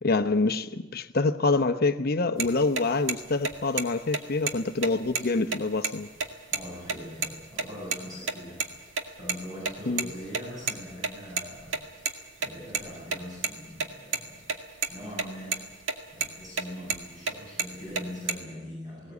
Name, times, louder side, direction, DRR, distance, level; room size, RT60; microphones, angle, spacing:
voice 1, 0.0-6.1 9.9-10.1, left 3 dB, 55° left, 1.0 m, -26 dB
sound 1, 2.4-2.5 2.8-2.9 3.1-3.2 3.4-3.8 4.1-4.2 4.5-4.6 4.8-5.9 6.2-6.3 6.5-6.6 6.9-7.3 7.6-8.0 8.3-9.3 9.6-12.1 12.4-14.2 14.5-14.6 14.8-15.2 15.5-15.9 16.2-17.3 17.6-18.3, right 5 dB, 80° right, 2.0 m, -29 dB
voice 2, 6.5-12.1 12.4-14.4 14.9-15.7 16.1-19.1, equal, 20° right, 7.6 m, -42 dB
19.0 x 19.0 x 8.3 m
head